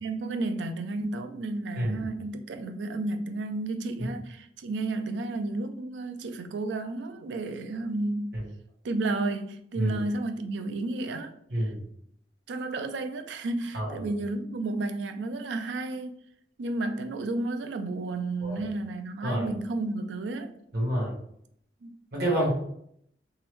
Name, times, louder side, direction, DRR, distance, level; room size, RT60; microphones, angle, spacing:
voice 1, 0.0-8.4 8.8-11.7 12.5-16.2 16.6-20.6 21.8-22.0, right 2 dB, 80° right, 0.4 m, -32 dB
voice 2, 20.7-21.1 22.1-22.5, right 1 dB, 60° right, 1.5 m, -27 dB
3.7 x 3.0 x 3.0 m
head